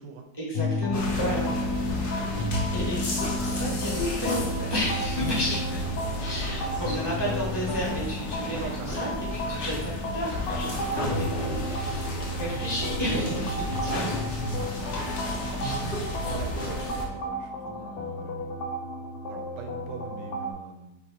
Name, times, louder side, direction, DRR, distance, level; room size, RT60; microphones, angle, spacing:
voice 1, 0.4-1.5 2.7-14.1 15.6-15.9, equal, 30° right, -6 dB, 0.5 m, -32 dB
sound 1, 0.5-20.5, left 1 dB, 70° left, 1.1 m, -33 dB
sound 2, 0.9-17.1, left 1 dB, 45° left, 0.9 m, -32 dB
voice 2, 1.1-1.9 5.8-5.9 8.5-9.2 13.7-15.0 15.4-18.5 19.3-21.0, right 5 dB, 80° right, 4 dB, 1.2 m, -43 dB
3.7 x 3.2 x 4.4 m, 0.92 s
omnidirectional pair, 1.9 m